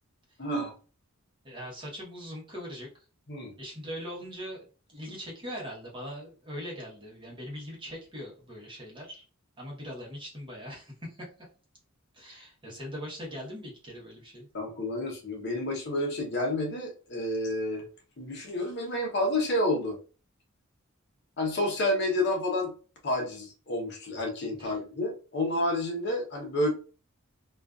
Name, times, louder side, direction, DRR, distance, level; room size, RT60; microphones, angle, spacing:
voice 1, 0.4-0.7 3.3-3.5 14.5-17.9 18.2-20.0 21.4-22.7 23.0-26.7, left 1 dB, 50° left, 2 dB, 0.7 m, -29 dB
voice 2, 1.4-2.9 3.6-4.6 4.9-9.2 9.6-11.3 12.1-14.5 24.6-24.8, equal, 20° right, -3 dB, 0.9 m, -41 dB
2.5 x 2.4 x 2.3 m, 0.35 s
head